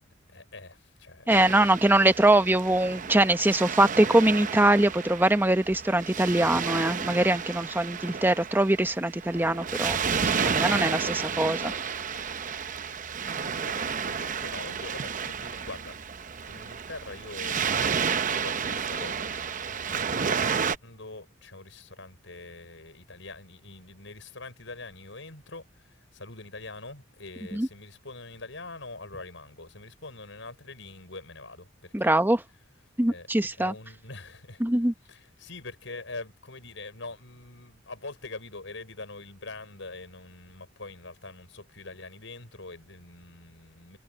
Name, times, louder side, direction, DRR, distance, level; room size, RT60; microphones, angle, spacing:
voice 1, 0.3-2.6 10.0-11.8 12.8-16.0 16.5-32.2 33.1-33.3 33.6-34.6 35.0-44.0, left 3 dB, 80° left, 6.4 m, -44 dB
voice 2, 1.3-10.0 10.4-11.6 27.5-27.7 31.9-32.4 33.0-33.7 34.6-34.9, right 1 dB, 10° right, 0.9 m, -22 dB
Waves surf, 1.3-20.8, right 6 dB, 45° right, 0.7 m, -31 dB
head